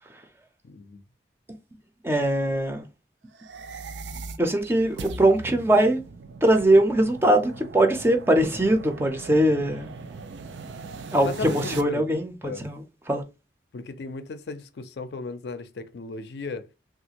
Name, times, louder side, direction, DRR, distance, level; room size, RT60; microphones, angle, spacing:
voice 1, 0.6-1.0 11.2-12.1 12.4-12.6 13.7-16.7, left 4 dB, 65° left, 0.4 m, -36 dB
voice 2, 2.0-2.8 4.4-6.0 6.4-9.9 11.1-12.8 13.1-13.2, right 1 dB, 15° right, 0.4 m, -21 dB
sound 1, 3.3-11.8, right 4 dB, 90° right, 0.4 m, -40 dB
3.4 x 2.4 x 2.8 m
head